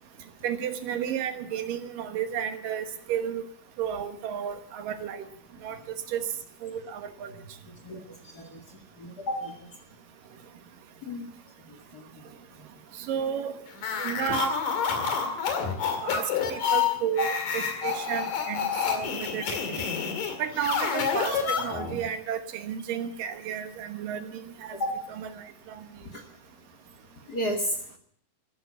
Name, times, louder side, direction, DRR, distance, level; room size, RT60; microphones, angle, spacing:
voice 1, 0.4-3.4 3.8-5.2 5.6-5.8 6.1-6.2 6.6-7.3 13.0-13.6 14.0-14.6 16.0-19.9 20.4-24.8 25.1-25.9, right 9 dB, 85° right, 8 dB, 3.0 m, -32 dB
voice 2, 9.0-9.7 11.0-11.3 11.7-12.0 17.2-17.3 24.8-24.9 26.1-26.2 27.3-27.7, equal, 35° left, 4 dB, 1.8 m, -32 dB
sound 1, 13.8-22.0, left 6 dB, 75° left, 3.9 m, -28 dB
14.5 x 11.5 x 8.1 m, 0.65 s
omnidirectional pair, 3.8 m